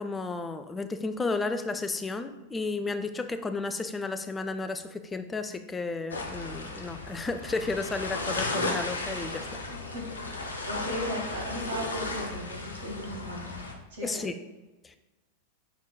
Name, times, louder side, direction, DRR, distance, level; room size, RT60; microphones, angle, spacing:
voice 1, 0.0-9.5 14.0-14.3 14.8-15.0, left 3 dB, 15° left, 9 dB, 0.3 m, -33 dB
sound 1, 6.1-13.7, left 2 dB, 70° left, 0.5 m, -35 dB
voice 2, 10.4-13.6 13.9-14.3, equal, 60° right, -2 dB, 1.5 m, -37 dB
5.7 x 3.6 x 2.2 m, 1.1 s
figure-of-eight pair, 90°, 0 cm